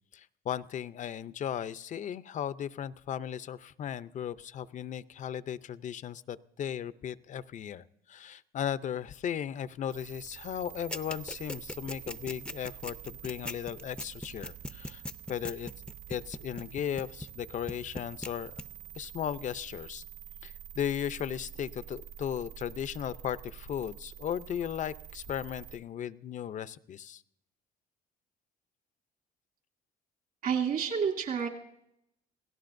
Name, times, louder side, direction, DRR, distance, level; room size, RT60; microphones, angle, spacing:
voice 1, 0.1-15.0 15.3-15.7 16.1-18.5 19.0-20.0 20.4-27.2, left 9 dB, 45° left, 15 dB, 0.6 m, -36 dB
sound 1, 9.9-25.8, right 11 dB, 75° right, 3.9 m, -48 dB
sound 2, 10.9-17.4 17.7-18.3 18.6-18.7, left 1 dB, 5° left, 0.6 m, -38 dB
voice 2, 30.4-31.5, right 7 dB, 60° right, 0 dB, 3.0 m, -29 dB
27.5 x 17.0 x 2.6 m, 0.78 s
cardioid pair, 110°, 17 cm